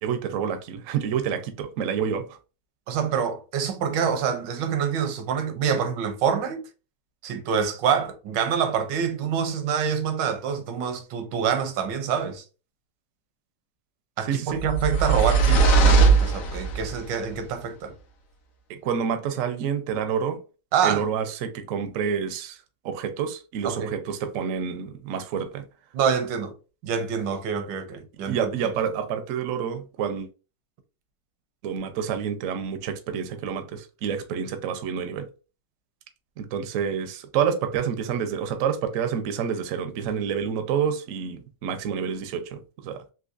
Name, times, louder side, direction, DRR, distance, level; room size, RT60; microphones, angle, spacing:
voice 1, 0.0-2.4 14.2-14.6 18.7-20.4 20.8-22.6 22.8-25.6 28.3-30.3 31.6-35.3 36.4-43.1, right 7 dB, 70° right, 0.8 m, -28 dB
voice 2, 2.9-6.6 7.2-12.4 14.2-18.0 20.7-21.0 23.6-23.9 25.9-26.5 26.8-28.5, right 7 dB, 85° right, 1.3 m, -26 dB
sound 1, 14.6-17.0, right 4 dB, 65° left, 0.8 m, -19 dB
3.8 x 2.8 x 2.4 m
omnidirectional pair, 1.9 m